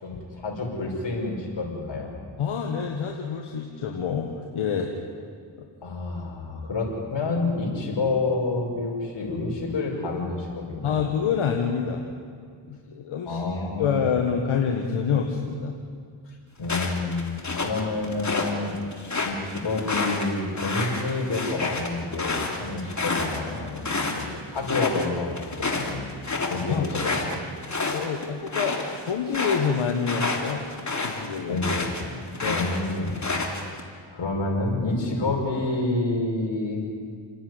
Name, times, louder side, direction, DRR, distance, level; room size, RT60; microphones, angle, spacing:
voice 1, 0.0-2.1 5.8-10.9 13.2-14.0 16.6-18.7 19.2-26.0 26.5-27.4 31.5-36.8, left 3 dB, 65° left, -1 dB, 6.1 m, -29 dB
voice 2, 2.4-4.9 5.6-5.7 10.8-12.1 12.7-15.7 26.7-27.1 27.9-30.7 31.0-31.6 32.4-32.7, left 6 dB, 85° left, 2 dB, 1.7 m, -27 dB
sound 1, 16.6-18.5 18.9-24.2 24.6-25.1 25.4-32.0 32.3-33.8, left 3 dB, 35° left, 3.2 m, -29 dB
29.5 x 10.0 x 9.7 m, 2.1 s
cardioid pair, 55°, 48 cm